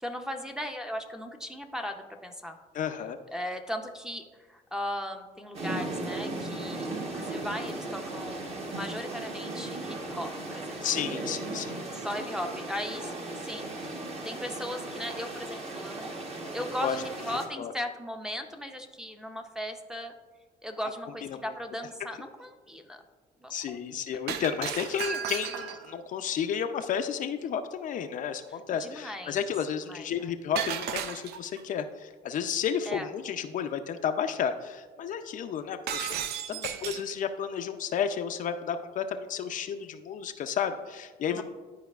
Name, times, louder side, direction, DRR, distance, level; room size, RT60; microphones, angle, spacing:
voice 1, 0.0-2.6 3.3-10.8 11.9-13.8 14.2-16.2 16.5-20.1 20.6-23.0 23.4-24.2 28.5-29.4 29.9-30.3 32.9-33.1 36.5-37.0 41.3-41.4, equal, 5° right, 5 dB, 0.6 m, -38 dB
voice 2, 2.7-3.2 10.8-11.8 16.8-17.0 17.3-17.7 21.3-21.4 23.5-41.4, left 7 dB, 50° left, 7 dB, 0.4 m, -32 dB
sound 1, 5.5-17.5, right 2 dB, 35° right, 1.0 m, -36 dB
Shatter, 24.3-25.9 30.6-31.6 35.9-37.1, right 9 dB, 75° right, 0.4 m, -34 dB
11.0 x 4.6 x 2.3 m, 1.3 s
cardioid pair, 110°, 17 cm